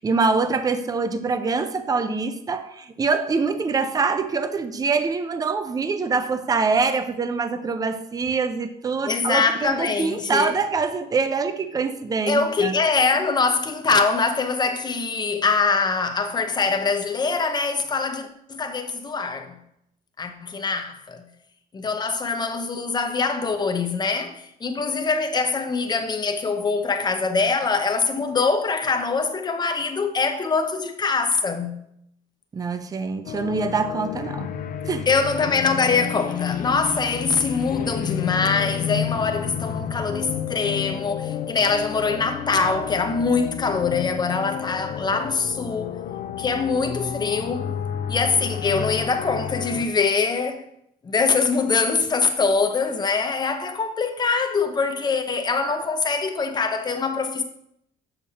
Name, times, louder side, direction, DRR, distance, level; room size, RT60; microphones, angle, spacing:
voice 1, 0.0-12.8 32.5-34.5 34.8-35.1, right 4 dB, 20° right, 0.5 m, -24 dB
voice 2, 9.0-10.6 12.3-19.6 20.2-21.3 21.7-31.8 35.1-46.0 46.4-47.7 48.1-50.6 51.0-57.4, left 4 dB, 25° left, 0.8 m, -23 dB
sound 1, 33.2-49.8, left 9 dB, 55° left, 0.5 m, -31 dB
6.8 x 6.6 x 2.8 m
cardioid pair, 110°, 17 cm